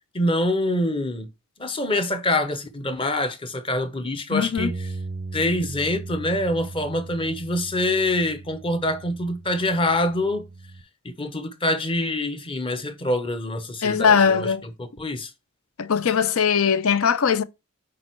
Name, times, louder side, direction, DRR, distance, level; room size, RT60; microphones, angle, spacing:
voice 1, 0.1-1.3 1.6-4.9 5.3-10.4 11.0-14.5 14.8-15.3, left 1 dB, 25° left, 0.8 m, -25 dB
voice 2, 4.3-4.7 13.8-14.6 15.8-17.4, left 6 dB, 75° left, 0.5 m, -20 dB
sound 1, 4.6-10.8, right 3 dB, 25° right, 0.4 m, -38 dB
8.8 x 4.1 x 4.5 m
head